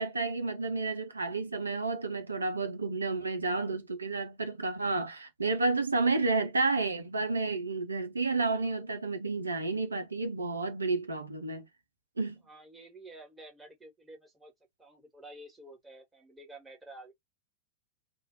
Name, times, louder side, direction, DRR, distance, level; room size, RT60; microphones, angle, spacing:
voice 1, 0.0-11.7 12.2-12.4, right 3 dB, 75° right, 0.9 m, -31 dB
voice 2, 12.5-14.5 14.8-17.1, right 1 dB, 10° right, 1.8 m, -50 dB
3.3 x 2.7 x 2.6 m
figure-of-eight pair, 90°, 0 cm